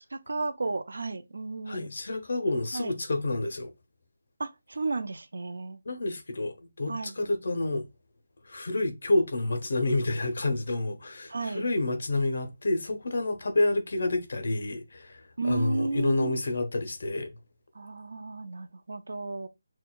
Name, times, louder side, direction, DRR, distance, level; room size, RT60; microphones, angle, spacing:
voice 1, 0.1-1.9 2.7-2.9 4.4-5.8 6.9-7.2 11.3-11.7 15.4-16.4 17.7-19.5, right 3 dB, 65° right, 0.5 m, -33 dB
voice 2, 1.7-3.7 5.9-7.9 8.5-17.3, left 2 dB, 50° left, 0.7 m, -29 dB
6.1 x 2.2 x 2.3 m
hypercardioid pair, 180°, 0 cm